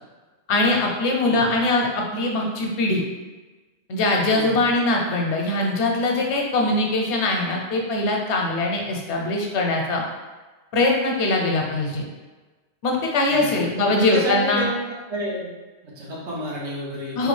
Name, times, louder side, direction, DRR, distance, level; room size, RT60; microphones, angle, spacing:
voice 1, 0.5-3.0 3.9-10.0 10.7-12.0 12.8-14.6 17.2-17.3, left 2 dB, 85° left, 0 dB, 1.0 m, -22 dB
voice 2, 4.3-4.7 11.7-12.0 13.3-13.6 13.9-14.7 15.1-15.5 15.8-17.3, equal, 85° right, -5 dB, 1.2 m, -30 dB
3.6 x 2.4 x 3.1 m, 1.3 s
omnidirectional pair, 1.1 m